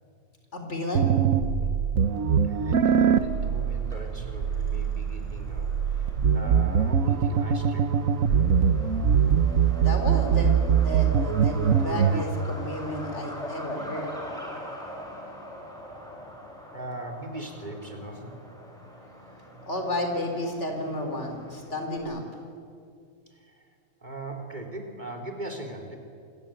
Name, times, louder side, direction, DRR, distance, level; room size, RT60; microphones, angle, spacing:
voice 1, 0.5-1.1 9.8-14.1 19.7-22.2, left 1 dB, 55° left, 3 dB, 4.1 m, -32 dB
sound 1, 1.0-12.2, right 7 dB, 70° right, 1.4 m, -23 dB
Truck, 2.0-22.0, equal, ahead, 5.7 m, -44 dB
voice 2, 2.3-7.9 16.7-18.3 23.3-23.7 24.0-26.0, right 1 dB, 30° right, 3 dB, 3.5 m, -40 dB
28.5 x 21.0 x 9.0 m, 2.4 s
omnidirectional pair, 1.5 m